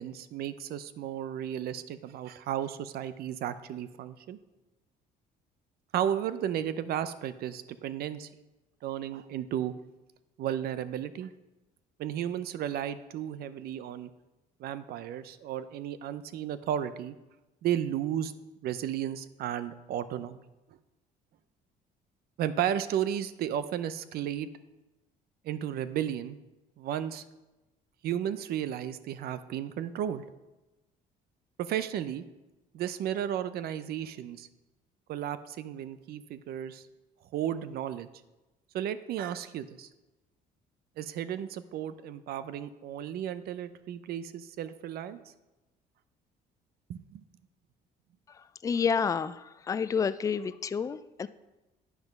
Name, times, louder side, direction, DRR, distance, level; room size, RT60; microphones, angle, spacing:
voice 1, 0.0-4.4 5.9-8.3 8.8-9.7 10.4-11.3 12.0-14.1 14.6-17.1 17.6-18.3 18.6-20.4 22.4-24.5 25.4-26.4 26.8-27.2 28.0-30.2 31.6-32.2 32.7-34.5 35.1-36.8 37.3-38.1 38.7-39.9 41.0-45.2 46.9-47.2, right 10 dB, 70° right, 13 dB, 0.6 m, -33 dB
voice 2, 48.6-49.4 49.7-51.3, left 6 dB, 20° left, 14 dB, 0.3 m, -29 dB
9.6 x 5.9 x 5.3 m, 1.0 s
cardioid pair, 110°, 17 cm